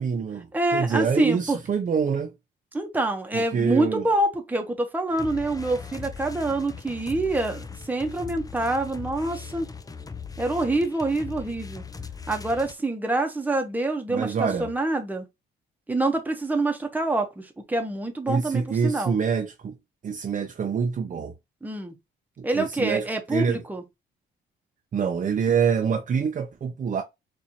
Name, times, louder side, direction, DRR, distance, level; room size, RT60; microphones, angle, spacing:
voice 1, 0.0-0.5 0.7-2.3 3.3-4.1 14.1-14.7 18.3-19.8 20.0-21.3 22.4-23.6 24.9-27.0, right 6 dB, 40° right, 0.6 m, -26 dB
voice 2, 0.5-1.6 2.7-9.7 10.4-11.8 12.3-15.2 15.9-19.2 21.6-22.0 22.4-23.8, right 2 dB, 10° right, 0.9 m, -26 dB
sound 1, 5.1-12.7, left 5 dB, 20° left, 0.5 m, -39 dB
4.2 x 2.6 x 2.9 m
cardioid pair, 90°, 20 cm